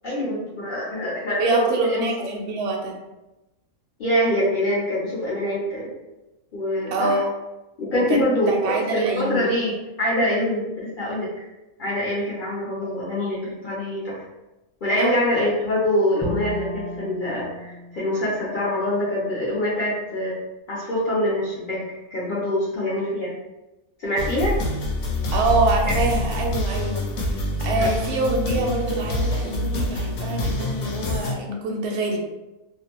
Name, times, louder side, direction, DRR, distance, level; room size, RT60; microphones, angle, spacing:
voice 1, 0.0-2.3 4.0-5.9 6.5-7.2 7.8-11.3 11.8-14.2 14.8-20.4 20.7-23.3 24.0-24.6 25.8-26.0 27.8-27.9, equal, 55° left, -7 dB, 0.5 m, -24 dB
voice 2, 1.4-3.0 6.9-7.3 7.9-8.2 8.5-9.5 15.0-15.4 25.3-27.0 27.3-32.2, right 2 dB, 65° right, 1 dB, 0.7 m, -25 dB
Bowed string instrument, 16.2-19.3, left 2 dB, 5° left, 0.6 m, -34 dB
sound 1, 24.2-31.3, left 1 dB, 75° left, 1.0 m, -26 dB
2.5 x 2.1 x 2.8 m, 1.0 s
omnidirectional pair, 1.5 m